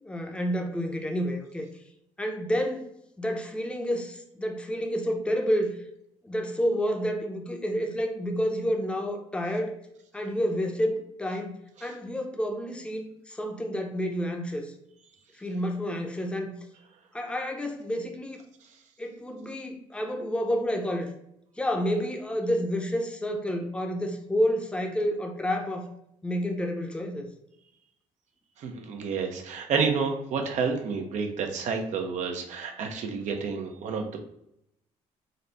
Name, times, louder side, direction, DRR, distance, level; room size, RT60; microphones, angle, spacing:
voice 1, 0.0-1.7 2.2-2.9 3.2-5.7 6.2-9.8 10.1-14.7 15.3-16.6 17.1-18.4 19.0-21.1 21.6-25.9 26.2-27.3, equal, 10° left, 3 dB, 0.7 m, -29 dB
voice 2, 28.6-34.2, right 5 dB, 70° right, 4 dB, 0.7 m, -29 dB
3.9 x 2.2 x 3.9 m, 0.78 s
cardioid pair, 100°, 13 cm